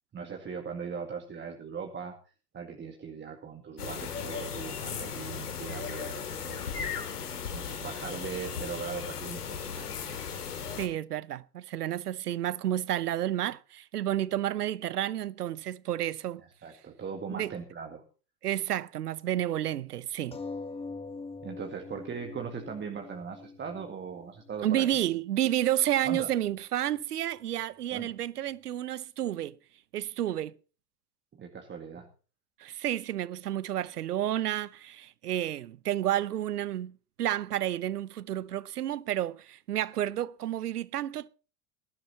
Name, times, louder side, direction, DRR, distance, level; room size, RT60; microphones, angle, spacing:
voice 1, 0.1-2.2 2.5-7.2 7.5-9.9 16.6-18.0 21.4-24.9 26.0-26.3 27.9-28.1 31.3-32.1, right 6 dB, 25° right, 2.0 m, -39 dB
sound 1, 3.8-10.9, left 7 dB, 80° left, 2.8 m, -36 dB
voice 2, 10.8-16.4 17.3-17.5 18.4-20.4 24.6-29.6 29.9-30.5 32.6-41.3, right 12 dB, 80° right, 0.8 m, -31 dB
sound 2, 20.3-25.3 26.1-26.2 26.5-26.6, left 3 dB, 10° left, 1.6 m, -43 dB
20.5 x 12.0 x 2.9 m
figure-of-eight pair, 85°, 46 cm